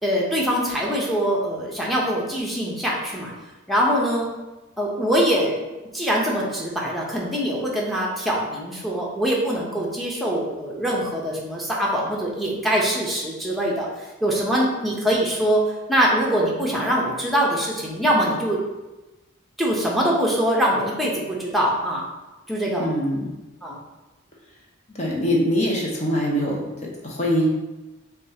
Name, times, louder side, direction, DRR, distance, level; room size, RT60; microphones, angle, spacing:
voice 1, 0.0-3.3 3.7-4.3 4.8-5.5 5.9-18.6 19.6-22.0 22.5-22.9 23.6-23.8, equal, ahead, -4 dB, 0.7 m, -23 dB
voice 2, 22.8-23.3 24.9-27.5, equal, 35° left, -2 dB, 0.7 m, -23 dB
6.5 x 2.4 x 2.8 m, 1.1 s
head